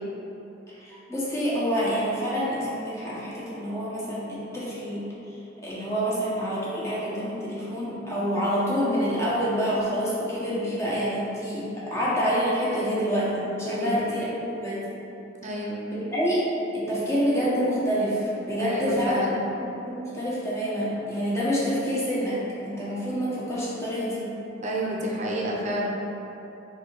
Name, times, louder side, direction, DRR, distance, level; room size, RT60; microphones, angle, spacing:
voice 1, 0.7-14.9 15.9-19.3 19.9-24.3, equal, 15° left, -8 dB, 0.9 m, -27 dB
voice 2, 12.7-13.1 13.7-14.0 15.4-15.8 18.6-19.4 24.6-25.9, right 1 dB, 35° right, -3 dB, 0.6 m, -30 dB
3.4 x 2.8 x 4.4 m, 3.0 s
head